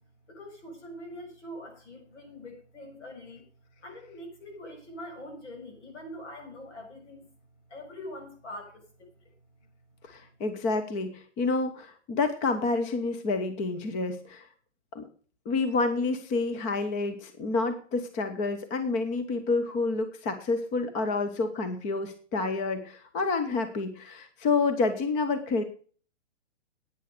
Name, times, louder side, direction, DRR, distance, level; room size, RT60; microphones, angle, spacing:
voice 1, 0.3-3.5 3.8-7.3 7.7-9.3, left 1 dB, 75° left, 2 dB, 7.0 m, -43 dB
voice 2, 10.0-14.5 14.9-15.1 15.5-25.6, left 3 dB, 20° left, 9 dB, 0.9 m, -29 dB
10.0 x 9.3 x 6.7 m, 0.43 s
hypercardioid pair, 150°, 36 cm